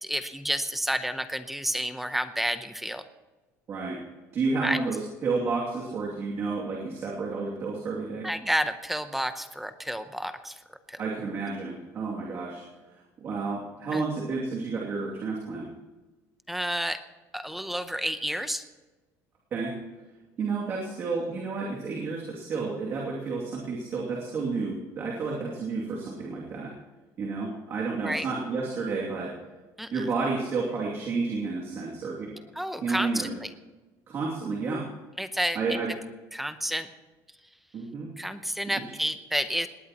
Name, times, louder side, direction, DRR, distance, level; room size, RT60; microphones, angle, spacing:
voice 1, 0.0-3.0 4.6-4.8 8.2-10.6 10.9-11.0 13.9-14.0 16.5-17.0 17.3-18.6 28.0-28.3 29.8-29.9 32.6-33.5 35.2-35.6 36.3-36.9 38.2-39.7, equal, ahead, 10 dB, 0.7 m, -30 dB
voice 2, 3.7-4.0 4.3-8.3 11.0-12.6 12.9-15.7 19.5-19.8 20.4-26.7 27.2-29.3 29.9-32.4 32.8-33.3 34.1-34.9 35.5-35.9 37.7-38.1 38.9-39.0, right 4 dB, 35° right, -3 dB, 2.6 m, -31 dB
19.5 x 19.0 x 3.0 m, 1.2 s
cardioid pair, 165°, 7 cm